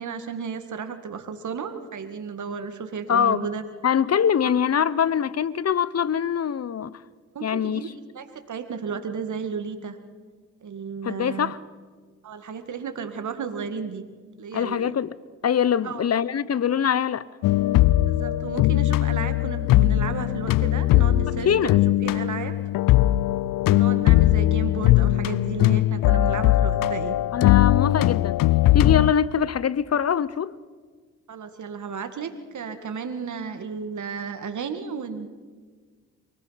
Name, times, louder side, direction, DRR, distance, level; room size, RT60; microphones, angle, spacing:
voice 1, 0.0-3.6 4.4-4.5 7.3-10.0 10.6-11.5 12.2-14.1 14.4-15.0 15.8-16.0 18.1-22.5 23.6-27.2 31.3-35.3, right 6 dB, 55° right, 2.1 m, -33 dB
voice 2, 3.1-3.5 3.8-7.0 7.4-7.8 11.0-11.6 14.5-15.2 15.4-17.3 21.4-21.8 27.3-28.4 28.7-30.6, left 8 dB, 45° left, 0.9 m, -23 dB
sound 1, 17.4-29.1, left 16 dB, 70° left, 0.5 m, -20 dB
24.0 x 18.5 x 5.8 m
supercardioid pair, 45°, 34 cm